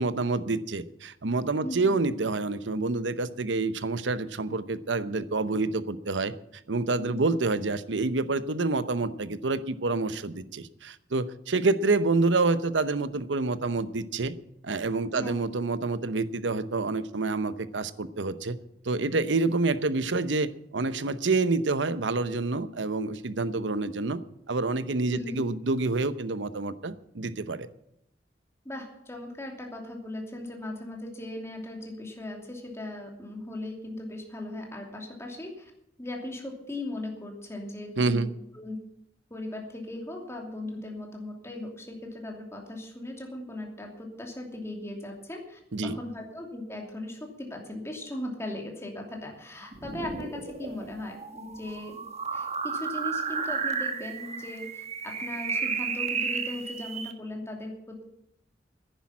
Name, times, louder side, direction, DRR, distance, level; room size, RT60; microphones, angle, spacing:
voice 1, 0.0-6.3 6.7-14.4 14.6-18.6 18.8-24.2 24.5-27.7 38.0-38.3 45.7-46.0, right 3 dB, 85° right, 14 dB, 0.8 m, -27 dB
voice 2, 1.6-1.9 7.1-7.2 15.1-15.3 25.1-25.4 28.6-35.7 36.0-38.8 39.3-52.0 52.3-58.0, left 1 dB, 15° left, 1 dB, 2.8 m, -38 dB
sound 1, 49.7-57.1, right 5 dB, 40° right, 1.3 m, -33 dB
10.5 x 10.5 x 8.5 m, 0.78 s
head